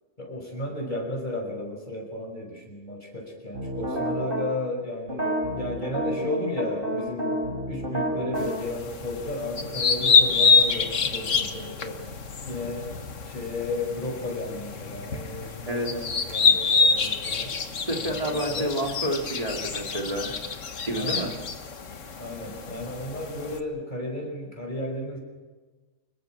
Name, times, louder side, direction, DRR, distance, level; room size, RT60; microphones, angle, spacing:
voice 1, 0.2-7.4 7.7-12.0 12.5-12.9 13.3-17.5 18.0-18.8 20.9-21.3 22.2-25.2, left 1 dB, 35° left, 1 dB, 6.2 m, -34 dB
sound 1, 3.5-4.5 5.1-8.5, right 1 dB, 45° right, 4.3 m, -29 dB
sound 2, 8.4-23.6, left 5 dB, 90° left, 1.8 m, -26 dB
voice 2, 17.9-20.3 20.8-21.3, equal, 30° right, 1 dB, 3.7 m, -29 dB
26.0 x 22.0 x 6.3 m, 1.3 s
omnidirectional pair, 1.3 m